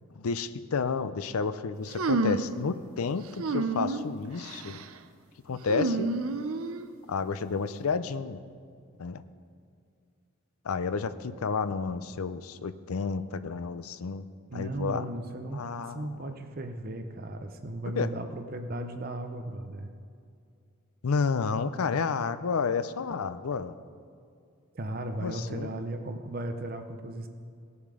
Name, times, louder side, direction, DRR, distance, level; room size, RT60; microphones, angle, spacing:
voice 1, 0.2-4.8 5.5-6.1 7.1-8.4 9.0-9.2 10.7-14.2 14.5-15.1 15.5-16.1 18.0-18.1 21.0-23.7 25.2-25.7, left 5 dB, 85° left, 13 dB, 0.5 m, -31 dB
sound 1, 2.0-2.6 3.4-4.1 4.4-4.9 5.7-6.9, right 3 dB, 80° right, 0.6 m, -29 dB
voice 2, 14.5-15.6 15.9-19.9 24.7-27.3, right 1 dB, 45° right, 7 dB, 0.7 m, -36 dB
17.5 x 7.1 x 4.9 m, 2.3 s
head